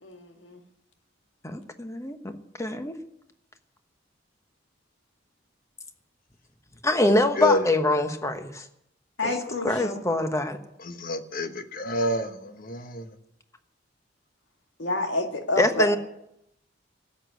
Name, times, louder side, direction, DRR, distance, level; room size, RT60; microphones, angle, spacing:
voice 1, 0.0-0.6 9.2-10.0 14.8-16.0, left 2 dB, 80° left, 4 dB, 2.0 m, -28 dB
voice 2, 1.4-3.0 6.8-8.7 9.2-9.3 9.6-10.6 15.6-16.0, left 1 dB, 15° left, 8 dB, 1.1 m, -24 dB
voice 3, 10.9-12.3 12.6-13.0, left 1 dB, 50° left, 9 dB, 1.1 m, -27 dB
13.0 x 8.4 x 9.3 m, 0.78 s
head